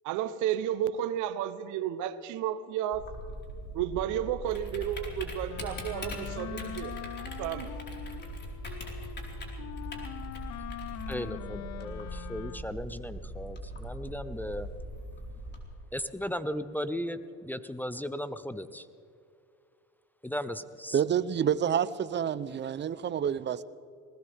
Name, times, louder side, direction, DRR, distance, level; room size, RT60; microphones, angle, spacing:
voice 1, 0.0-3.1 3.7-6.9 7.4-7.7, right 11 dB, 75° right, 1.0 m, -32 dB
Typing, 2.9-15.6, equal, 35° left, 4.6 m, -40 dB
Wind instrument woodwind instrument, 5.5-12.9, left 12 dB, 65° left, 0.8 m, -43 dB
voice 2, 11.1-14.7 15.9-18.9 20.2-21.0, equal, 5° left, 0.7 m, -36 dB
voice 3, 20.9-23.6, right 8 dB, 35° right, 0.7 m, -28 dB
20.5 x 20.0 x 3.6 m
supercardioid pair, 95°, 30 cm